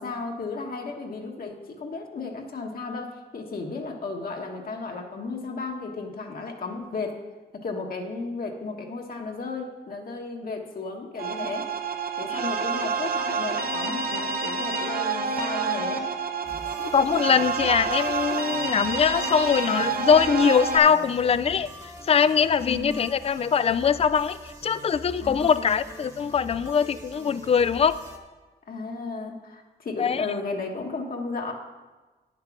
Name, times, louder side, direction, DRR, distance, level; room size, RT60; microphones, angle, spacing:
voice 1, 0.0-7.2 7.5-11.7 12.2-16.0 22.7-23.0 25.2-25.7 28.7-31.5, left 3 dB, 55° left, 1 dB, 1.4 m, -34 dB
sound 1, 11.2-20.8, right 4 dB, 55° right, 0.9 m, -28 dB
sound 2, 16.4-28.2, right 1 dB, 20° right, 1.3 m, -44 dB
voice 2, 16.8-21.7 22.1-28.0 30.0-30.3, left 7 dB, 35° left, 15 dB, 0.4 m, -22 dB
9.6 x 6.7 x 5.9 m, 1.3 s
cardioid pair, 95°, 18 cm